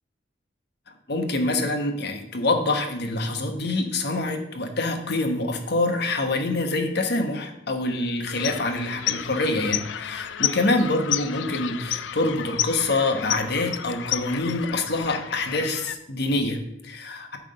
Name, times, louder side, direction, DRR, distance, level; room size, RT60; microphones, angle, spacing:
voice 1, 1.1-17.4, left 2 dB, 60° left, 5 dB, 1.1 m, -26 dB
sound 1, 8.3-16.0, left 11 dB, 80° left, 0.4 m, -31 dB
9.0 x 3.5 x 6.7 m, 0.82 s
head